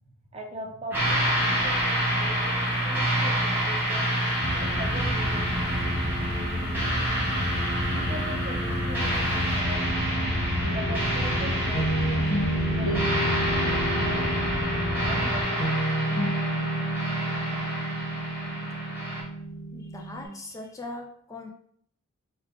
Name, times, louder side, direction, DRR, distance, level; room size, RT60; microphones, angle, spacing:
voice 1, 0.0-4.1 4.5-6.0 6.3-7.0 7.9-10.0 10.7-12.3 12.6-14.5 15.0-15.8, right 1 dB, 30° right, 1 dB, 0.6 m, -41 dB
sound 1, 0.9-19.2, right 1 dB, 10° right, 0.9 m, -28 dB
sound 2, 4.4-15.4, left 1 dB, 50° left, 0.7 m, -30 dB
sound 3, 10.6-20.3, right 1 dB, 75° left, 0.9 m, -30 dB
voice 2, 19.7-21.5, left 2 dB, 15° left, 1 dB, 0.3 m, -40 dB
3.3 x 2.3 x 3.4 m, 0.66 s
head